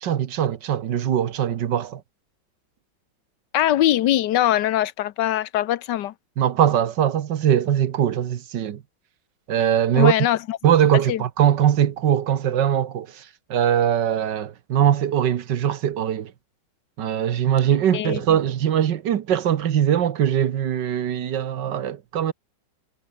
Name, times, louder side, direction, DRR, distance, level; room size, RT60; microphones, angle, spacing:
voice 1, 0.0-2.0 6.4-8.8 9.5-10.1 10.6-13.2 13.5-16.3 17.0-22.3, right 10 dB, 65° right, 1.7 m, -21 dB
voice 2, 3.5-6.1 9.9-10.6 11.1-11.2 17.9-18.4, left 13 dB, 65° left, 1.3 m, -22 dB
omnidirectional pair, 2.2 m